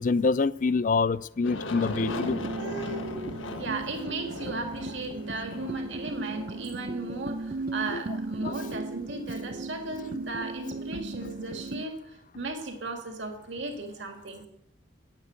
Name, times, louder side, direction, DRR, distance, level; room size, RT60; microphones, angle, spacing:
voice 1, 0.0-2.4 7.9-8.0 8.4-8.5, left 4 dB, 40° left, 0.4 m, -26 dB
Aircraft, 1.4-8.1, left 2 dB, 85° left, 1.3 m, -39 dB
sound 1, 1.8-11.9, right 3 dB, 45° right, 0.6 m, -36 dB
voice 2, 2.5-14.5, right 2 dB, 70° right, 2.2 m, -36 dB
10.5 x 8.9 x 8.2 m
head